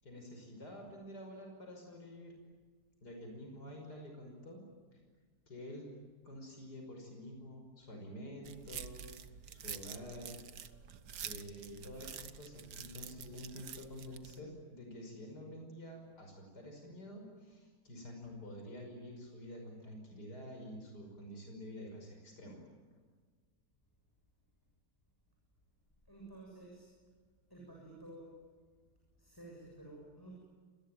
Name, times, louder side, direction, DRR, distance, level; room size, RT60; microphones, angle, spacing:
voice 1, 0.0-2.4 3.0-4.6 4.9-5.0 5.5-5.9 6.2-9.0 9.5-10.4 11.2-22.6, equal, 80° left, 2 dB, 6.1 m, -48 dB
sound 1, 8.4-14.4, right 8 dB, 90° right, 1.8 m, -48 dB
voice 2, 26.1-26.9 27.5-28.3 29.2-30.4, right 2 dB, 10° left, -2 dB, 7.1 m, -52 dB
28.5 x 21.5 x 9.2 m, 1.5 s
omnidirectional pair, 1.7 m